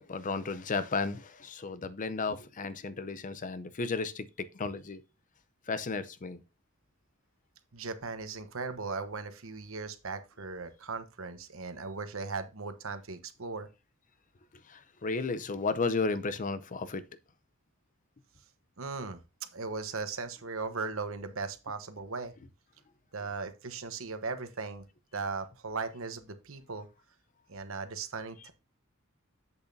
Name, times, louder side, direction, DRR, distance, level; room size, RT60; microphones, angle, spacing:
voice 1, 0.0-4.3 4.5-5.0 5.7-6.4 14.7-17.1, left 4 dB, 40° left, 0.6 m, -33 dB
voice 2, 7.7-13.7 18.8-19.2 19.5-22.3 23.1-24.8 25.1-26.9 27.5-28.5, right 4 dB, 70° right, 1.1 m, -38 dB
8.1 x 6.9 x 2.7 m
head